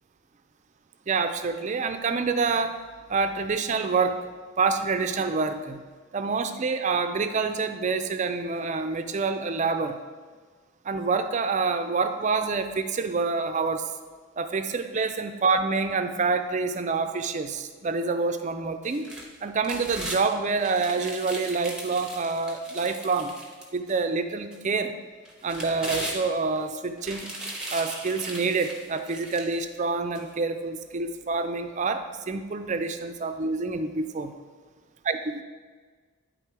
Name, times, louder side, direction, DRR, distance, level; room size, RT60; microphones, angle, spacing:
voice 1, 1.1-2.8 3.1-4.2 4.6-5.8 6.1-10.0 10.9-13.9 14.4-19.1 19.4-23.3 23.7-24.9 25.4-27.3 27.7-34.3 35.1-35.4, right 4 dB, 35° right, 8 dB, 0.4 m, -27 dB
sound 1, 18.8-20.2 20.6-24.0 24.5-24.6 25.2-26.6 27.0-29.6 30.1-30.2, right 1 dB, 5° right, 0.8 m, -38 dB
9.7 x 3.7 x 4.6 m, 1.5 s
head